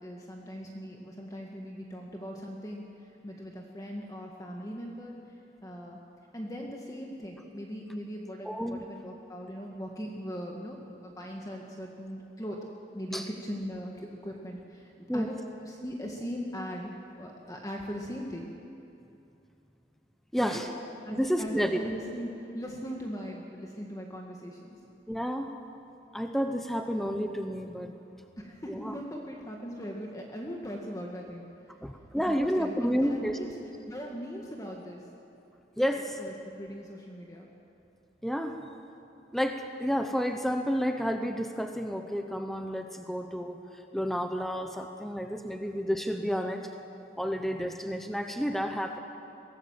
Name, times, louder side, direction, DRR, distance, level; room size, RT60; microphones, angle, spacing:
voice 1, 0.0-6.0 6.3-12.6 12.9-16.9 17.2-18.5 20.4-20.6 21.0-24.8 28.4-31.4 32.3-33.6 33.9-35.0 36.2-37.5 45.5-45.7, equal, 20° left, 0 dB, 1.7 m, -39 dB
voice 2, 8.4-8.8 13.1-13.3 15.1-15.3 20.3-20.7 21.1-21.8 25.1-25.5 26.1-27.9 28.7-29.0 31.8-33.4 35.8-36.2 38.2-38.6 39.3-43.6 43.9-46.7 47.2-49.0, equal, ahead, 5 dB, 0.9 m, -30 dB
23.0 x 18.0 x 7.4 m, 2.8 s
head